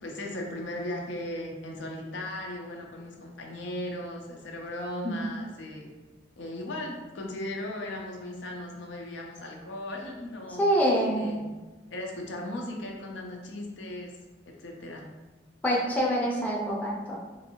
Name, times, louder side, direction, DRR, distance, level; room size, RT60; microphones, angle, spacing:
voice 1, 0.0-5.9 6.4-10.7 11.2-11.4 11.9-14.2 14.4-15.1, left 1 dB, 85° left, 1 dB, 0.6 m, -37 dB
voice 2, 10.6-11.2 15.6-17.2, equal, 10° left, -4 dB, 0.5 m, -25 dB
3.1 x 2.6 x 2.9 m, 1.2 s
head